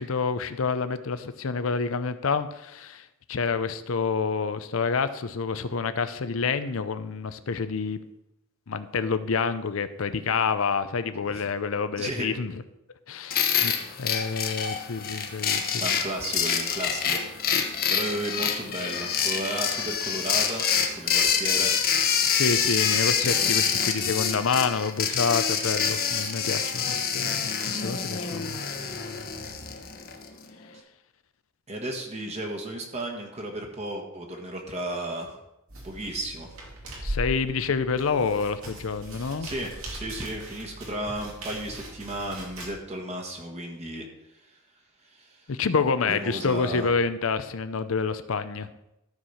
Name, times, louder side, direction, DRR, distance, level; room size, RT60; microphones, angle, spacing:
voice 1, 0.0-8.0 8.7-12.6 13.1-13.7 14.0-15.9 22.2-28.6 37.0-39.5 45.5-48.7, left 5 dB, 75° left, 11 dB, 0.6 m, -28 dB
voice 2, 12.0-12.3 15.8-17.2 17.9-21.7 30.7-30.8 31.7-35.4 35.8-36.5 39.4-44.0 44.4-44.6 45.0-45.5 46.1-46.9, right 1 dB, 30° right, 1 dB, 1.5 m, -34 dB
sound 1, 13.3-30.3, left 7 dB, 45° left, 1.1 m, -26 dB
sound 2, 35.7-42.7, right 1 dB, 80° right, 2.5 m, -39 dB
13.0 x 4.7 x 5.7 m, 0.89 s
head